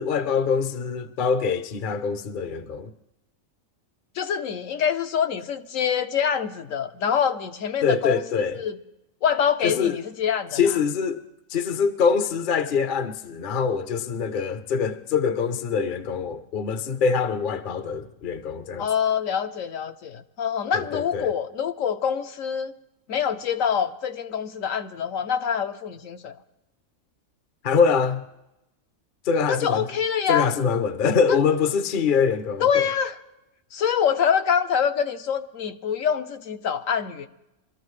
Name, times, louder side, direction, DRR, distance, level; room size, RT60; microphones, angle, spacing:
voice 1, 0.0-2.9 7.8-8.6 9.6-10.0 10.5-11.2 11.5-18.9 20.7-21.3 27.6-28.2 29.2-29.9 30.3-32.8, left 6 dB, 50° left, 0.7 m, -24 dB
voice 2, 4.1-8.8 9.2-10.6 18.8-22.7 23.1-26.4 29.5-30.5 31.3-31.4 32.6-33.2 33.7-37.3, left 7 dB, 75° left, 1.2 m, -25 dB
24.0 x 13.5 x 3.2 m
omnidirectional pair, 1.4 m